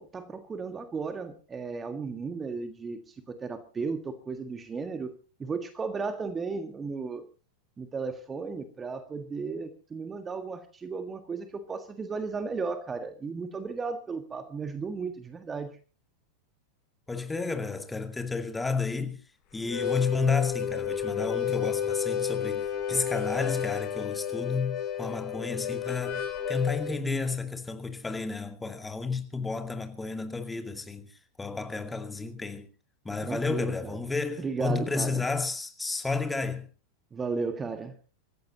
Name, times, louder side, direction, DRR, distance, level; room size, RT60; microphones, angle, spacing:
voice 1, 0.0-5.1 5.4-7.2 7.8-15.8 33.2-34.0 34.4-35.3 37.1-38.0, right 4 dB, 20° right, 1.6 m, -35 dB
voice 2, 17.1-19.2 19.5-31.1 31.4-32.7 33.0-36.7, left 4 dB, 10° left, 2.3 m, -31 dB
Harmonica, 19.6-26.9, left 8 dB, 35° left, 5.6 m, -31 dB
26.0 x 14.5 x 2.9 m
figure-of-eight pair, 90°, 0 cm